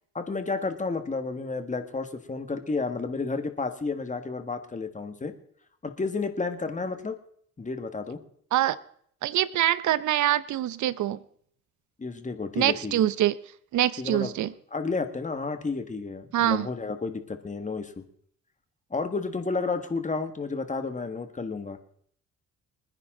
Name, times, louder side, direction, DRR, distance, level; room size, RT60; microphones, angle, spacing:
voice 1, 0.2-5.3 5.8-7.2 7.6-8.2 12.0-13.1 14.0-14.3 14.7-17.9 18.9-21.8, left 4 dB, 25° left, 8 dB, 1.8 m, -31 dB
voice 2, 9.2-11.2 12.6-13.3 13.7-14.5 16.3-16.7, right 13 dB, 75° right, 17 dB, 0.7 m, -24 dB
25.5 x 10.0 x 3.9 m, 0.63 s
cardioid pair, 90°, 30 cm